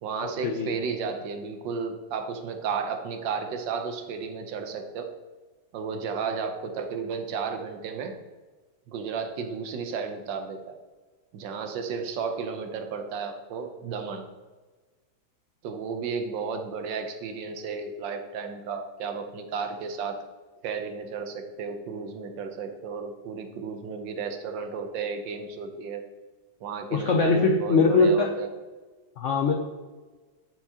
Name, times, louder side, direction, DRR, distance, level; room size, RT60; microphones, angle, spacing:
voice 1, 0.0-5.1 5.7-8.2 8.9-10.8 11.3-14.2 15.6-20.3 20.6-26.0 26.6-28.5, right 5 dB, 85° right, 6 dB, 1.4 m, -33 dB
voice 2, 26.9-28.3 29.2-29.5, left 3 dB, 80° left, 3 dB, 0.6 m, -21 dB
9.1 x 4.5 x 2.8 m, 1.3 s
omnidirectional pair, 1.9 m